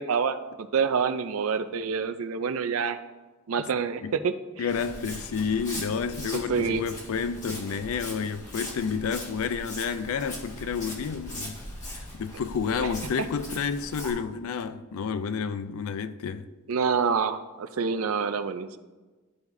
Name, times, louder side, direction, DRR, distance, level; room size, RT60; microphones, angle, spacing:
voice 1, 0.0-3.0 3.5-4.3 6.3-6.8 12.8-12.9 16.7-18.8, right 6 dB, 70° right, 0.5 m, -27 dB
voice 2, 4.6-11.6 11.9-16.5, left 6 dB, 70° left, 0.4 m, -30 dB
Walk footsteps, 4.7-14.1, left 1 dB, 35° left, 1.7 m, -40 dB
12.5 x 4.7 x 2.6 m
head